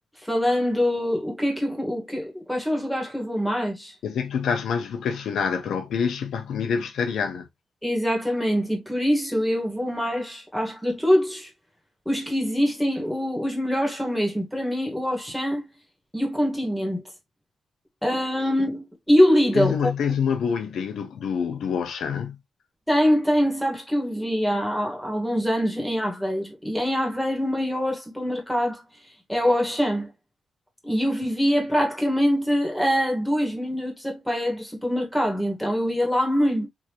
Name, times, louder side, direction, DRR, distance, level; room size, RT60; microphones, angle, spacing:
voice 1, 0.2-3.9 7.8-11.5 12.0-15.7 16.1-17.0 18.0-19.8 22.9-28.8 29.3-30.1 30.8-36.7, equal, ahead, 1.6 m, -24 dB
voice 2, 4.0-7.5 19.5-22.4, left 6 dB, 80° left, 0.9 m, -26 dB
3.6 x 2.8 x 3.0 m
cardioid pair, 120°, 0 cm